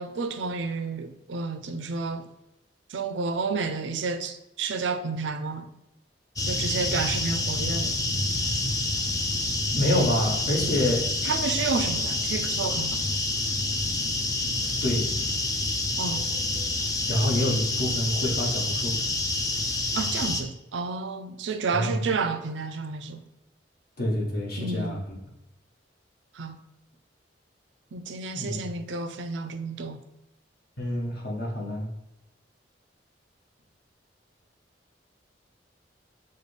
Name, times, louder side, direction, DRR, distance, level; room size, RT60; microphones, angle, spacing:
voice 1, 0.0-2.3 2.9-5.7 6.4-8.0 11.2-13.0 16.0-16.3 19.9-23.2 24.6-25.0 26.3-26.6 27.9-30.0, right 4 dB, 90° right, 0.5 m, -31 dB
sound 1, 6.4-20.4, left 2 dB, 20° left, 0.5 m, -28 dB
voice 2, 9.7-11.0 14.8-15.1 17.1-19.0 21.7-22.0 24.0-25.1 28.4-28.7 30.8-31.9, left 1 dB, 60° left, 1.3 m, -27 dB
6.5 x 2.2 x 3.3 m
head